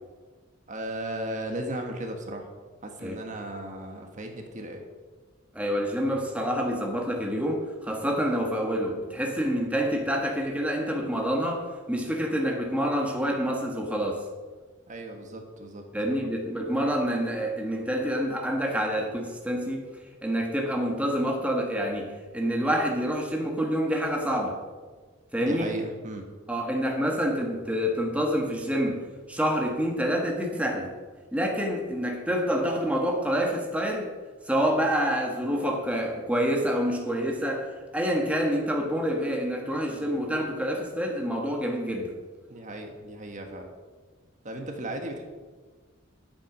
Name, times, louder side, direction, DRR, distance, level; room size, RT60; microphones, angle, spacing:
voice 1, 0.7-2.5 2.8-4.8 14.9-15.8 25.4-26.2 42.5-43.7 44.4-45.2, right 1 dB, 40° right, 3 dB, 1.6 m, -36 dB
voice 2, 5.5-14.3 15.9-19.9 20.2-24.6 25.3-25.7 26.5-29.0 29.3-30.9 31.3-34.1 34.5-42.1, equal, 5° right, 0 dB, 1.5 m, -27 dB
11.0 x 8.7 x 6.2 m, 1.4 s
head